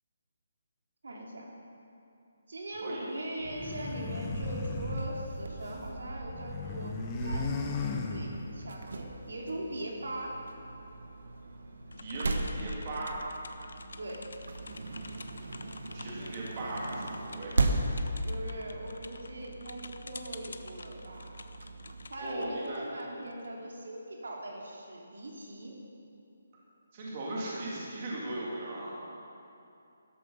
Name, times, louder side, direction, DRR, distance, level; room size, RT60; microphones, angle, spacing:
voice 1, 1.0-1.4 2.5-10.3 14.0-14.2 18.2-21.3 22.1-25.7, right 1 dB, 85° right, -2 dB, 3.1 m, -40 dB
sound 1, 3.4-5.9 6.2-8.7, left 4 dB, 10° left, 0.7 m, -37 dB
sound 2, 3.4-22.1, right 2 dB, 65° right, 1.3 m, -38 dB
sound 3, 11.9-23.5, left 3 dB, 75° left, 0.8 m, -49 dB
voice 2, 12.0-13.2 15.9-17.8 22.2-22.8 26.9-28.9, right 1 dB, 25° right, -5 dB, 2.3 m, -38 dB
13.5 x 12.5 x 5.5 m, 2.7 s
hypercardioid pair, 180°, 0 cm